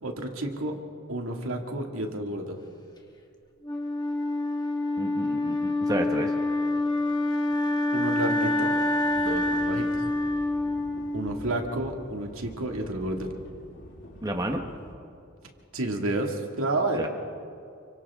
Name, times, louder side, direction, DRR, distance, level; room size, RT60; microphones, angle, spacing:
voice 1, 0.0-0.8 1.1-2.6 7.9-8.7 9.2-9.9 11.1-13.3 15.7-17.1, right 1 dB, 75° right, 2 dB, 2.4 m, -30 dB
Wind instrument woodwind instrument, 3.6-11.7, left 2 dB, 20° left, 1.8 m, -27 dB
voice 2, 5.0-6.3 14.2-14.6 16.9-17.1, right 1 dB, 15° right, 3 dB, 1.2 m, -31 dB
sound 1, 9.1-14.9, left 1 dB, 55° left, 4.0 m, -47 dB
29.0 x 25.0 x 3.7 m, 2.6 s
head